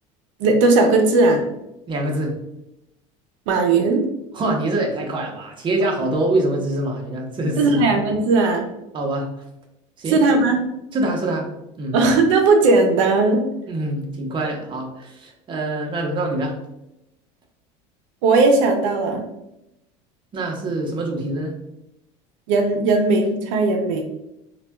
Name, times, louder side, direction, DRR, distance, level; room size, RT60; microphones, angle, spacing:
voice 1, 0.4-1.4 3.5-4.0 7.6-8.6 10.1-10.6 11.9-13.4 18.2-19.2 22.5-24.0, right 3 dB, 85° right, 4 dB, 0.5 m, -17 dB
voice 2, 1.9-2.3 4.3-7.9 8.9-9.3 10.0-10.2 10.9-11.5 11.8-12.0 13.7-16.6 20.3-21.5, right 1 dB, 30° right, 0 dB, 0.8 m, -24 dB
4.0 x 2.2 x 2.2 m, 0.87 s
supercardioid pair, 115°, 16 cm